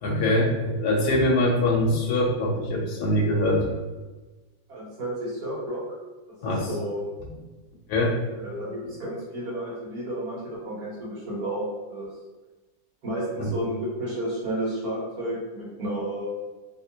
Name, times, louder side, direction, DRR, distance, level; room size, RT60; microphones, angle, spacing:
voice 1, 0.0-3.6 6.4-6.7 7.9-8.1 13.4-13.5, left 1 dB, 75° left, -1 dB, 1.2 m, -23 dB
voice 2, 4.7-5.8 6.4-7.0 8.4-12.1 13.0-16.3, right 1 dB, 70° right, -7 dB, 1.9 m, -31 dB
3.4 x 2.8 x 2.7 m, 1.2 s
omnidirectional pair, 1.7 m